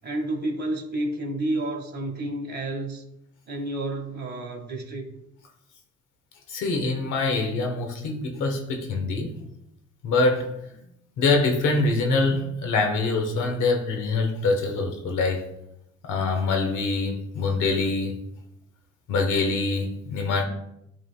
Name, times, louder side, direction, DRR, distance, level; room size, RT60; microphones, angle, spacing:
voice 1, 0.0-3.0 3.5-5.1, right 1 dB, 35° right, 3 dB, 1.7 m, -30 dB
voice 2, 6.5-9.4 10.0-10.6 11.2-15.5 16.0-18.1 19.1-20.4, left 3 dB, 85° left, 3 dB, 1.3 m, -24 dB
11.0 x 3.7 x 2.3 m, 0.80 s
cardioid pair, 90°, 30 cm